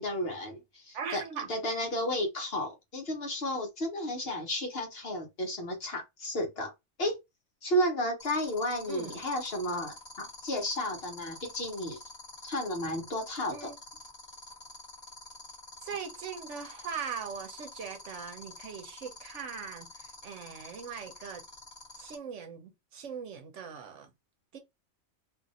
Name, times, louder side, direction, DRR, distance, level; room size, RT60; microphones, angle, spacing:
voice 1, 0.0-1.2 1.5-6.7 7.0-7.2 7.6-12.0 12.4-13.7, equal, 50° left, 1.1 m, -32 dB
voice 2, 0.9-1.5 8.9-9.1 13.5-13.8 15.8-21.4 22.0-24.1 24.5-24.6, right 6 dB, 65° right, 1.0 m, -40 dB
sound 1, 8.2-22.1, left 3 dB, 20° left, 1.1 m, -47 dB
2.7 x 2.5 x 4.0 m
omnidirectional pair, 1.4 m